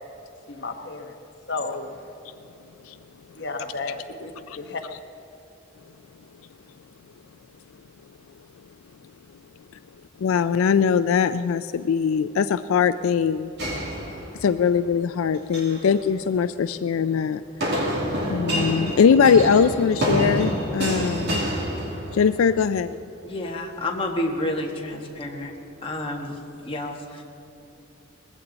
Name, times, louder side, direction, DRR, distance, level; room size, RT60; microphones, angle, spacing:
voice 1, 0.5-1.1 1.5-2.0 3.3-4.3 4.6-4.8, left 3 dB, 55° left, 5 dB, 1.1 m, -32 dB
voice 2, 10.2-13.5 14.3-17.9 18.3-21.5 22.1-23.0, left 6 dB, 80° left, 12 dB, 0.4 m, -21 dB
sound 1, 13.6-14.7 15.3-15.8 17.6-22.4, equal, 55° right, 2.6 m, -27 dB
voice 3, 23.2-25.5 25.8-27.2, left 1 dB, 25° left, 0 dB, 1.6 m, -30 dB
20.0 x 15.5 x 4.0 m, 2.9 s
head